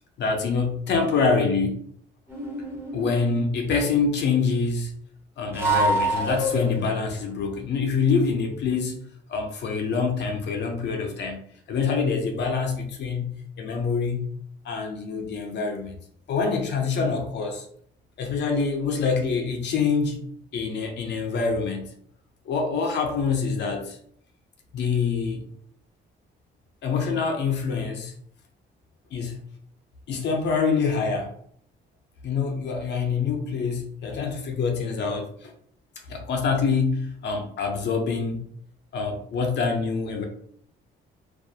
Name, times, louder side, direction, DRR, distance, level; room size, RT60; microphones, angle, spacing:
voice 1, 0.2-1.8 2.9-4.9 5.4-9.0 9.3-11.4 11.7-14.3 14.6-16.0 16.3-17.7 18.2-20.2 20.5-21.9 22.5-24.0 24.7-25.4 26.8-28.1 29.1-29.4 30.1-31.3 32.2-35.5 36.1-38.5 38.9-40.2, left 5 dB, 60° left, 2 dB, 0.5 m, -25 dB
sound 1, 2.3-3.3 5.5-7.0, right 1 dB, 10° right, 0.7 m, -26 dB
2.3 x 2.1 x 2.6 m, 0.63 s
cardioid pair, 90°, 20 cm